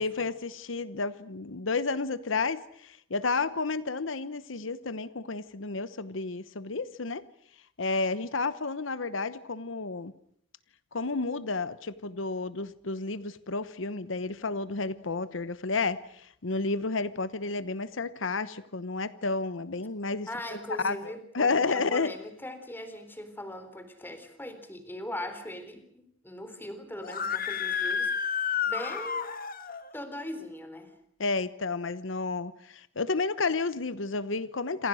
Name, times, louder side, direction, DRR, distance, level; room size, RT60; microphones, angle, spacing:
voice 1, 0.0-7.2 7.8-10.1 10.9-22.1 31.2-34.9, left 3 dB, 85° left, 15 dB, 1.0 m, -31 dB
voice 2, 20.3-29.3 29.9-30.9, left 1 dB, 10° left, 9 dB, 3.9 m, -40 dB
Screaming, 27.0-29.8, left 7 dB, 50° left, 1.7 m, -30 dB
27.5 x 27.0 x 6.4 m, 0.65 s
head